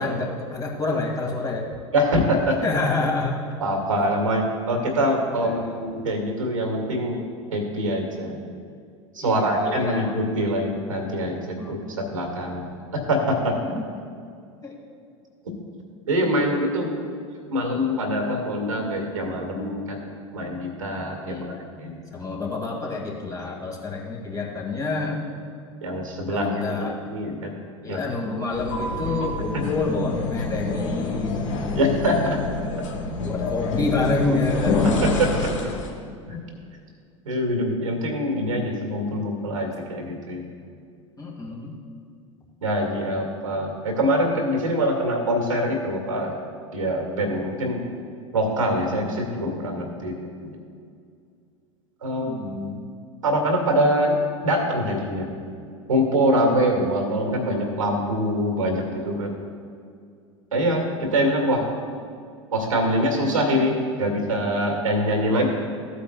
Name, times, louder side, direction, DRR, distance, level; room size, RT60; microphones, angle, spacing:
voice 1, 0.0-1.6 2.6-3.4 5.4-5.7 9.2-10.1 11.6-12.0 13.6-13.8 14.6-14.8 21.3-21.6 22.1-25.2 26.3-27.0 27.8-31.4 33.2-35.3 41.2-41.7 52.2-52.8, left 3 dB, 20° left, -1 dB, 2.2 m, -28 dB
voice 2, 1.9-2.6 3.6-7.2 7.5-8.4 9.1-13.6 16.1-16.9 17.5-20.0 20.3-22.2 25.8-26.5 26.8-27.6 27.9-28.0 29.5-29.6 31.7-32.4 35.0-35.5 36.3-36.4 37.3-40.4 42.6-46.4 46.7-47.8 48.3-50.2 50.4-50.6 52.0-52.4 53.2-54.2 54.4-55.3 55.9-59.3 60.5-61.6 62.5-65.5, equal, 85° right, 2 dB, 2.0 m, -24 dB
sound 1, 28.5-36.0, left 3 dB, 70° left, 1.3 m, -27 dB
15.0 x 8.4 x 2.3 m, 2.3 s
figure-of-eight pair, 80°, 16 cm